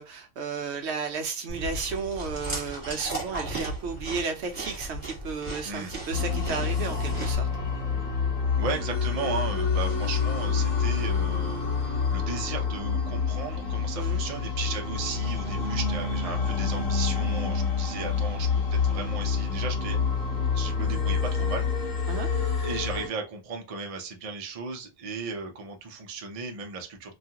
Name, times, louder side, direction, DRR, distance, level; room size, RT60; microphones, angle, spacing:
voice 1, 0.0-7.5 14.0-14.2 22.1-22.3, right 5 dB, 65° right, 6 dB, 0.8 m, -33 dB
Chewing mastication, 1.5-7.3, right 1 dB, 15° right, 1.2 m, -36 dB
sound 1, 6.1-23.1, left 5 dB, 75° left, 1.5 m, -27 dB
voice 2, 8.6-20.0 20.5-21.7 22.6-27.2, right 4 dB, 50° right, 3 dB, 0.4 m, -35 dB
3.0 x 2.3 x 2.7 m, 0.27 s
omnidirectional pair, 1.4 m